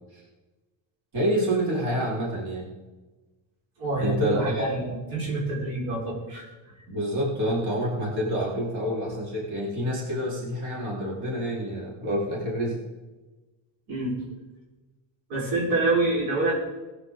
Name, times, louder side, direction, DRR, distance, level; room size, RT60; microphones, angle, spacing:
voice 1, 1.1-2.7 4.0-4.7 6.9-12.8, equal, 55° right, -4 dB, 4.4 m, -28 dB
voice 2, 3.8-6.7 13.9-14.2 15.3-16.5, right 2 dB, 85° right, -3 dB, 4.7 m, -27 dB
17.5 x 9.8 x 3.8 m, 1.2 s
cardioid pair, 105°, 47 cm